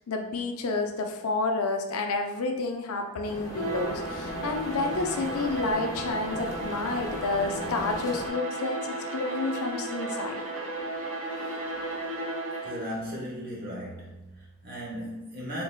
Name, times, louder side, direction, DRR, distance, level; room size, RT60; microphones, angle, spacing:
voice 1, 0.1-10.4, left 3 dB, 70° left, 3 dB, 0.5 m, -30 dB
sound 1, 3.2-8.3, left 1 dB, 15° left, 0.6 m, -38 dB
Bowed string instrument, 3.4-12.9, right 2 dB, 70° right, 1.0 m, -35 dB
voice 2, 12.6-15.6, equal, 45° right, -4 dB, 1.1 m, -37 dB
3.8 x 3.3 x 2.4 m, 0.92 s
head